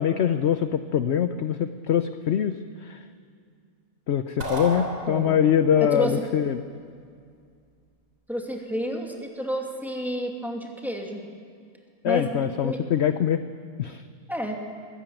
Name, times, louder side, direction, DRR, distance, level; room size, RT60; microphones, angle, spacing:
voice 1, 0.0-3.0 4.1-6.6 12.0-13.4 13.8-14.0, left 9 dB, 60° left, 10 dB, 0.7 m, -23 dB
sound 1, 4.4-5.7, equal, 55° right, 4.0 m, -32 dB
voice 2, 5.1-5.4 5.8-6.2 8.3-11.2 12.0-12.3 12.6-12.8 14.3-14.5, equal, ahead, 0 dB, 2.5 m, -30 dB
23.5 x 15.0 x 9.0 m, 2.2 s
omnidirectional pair, 1.7 m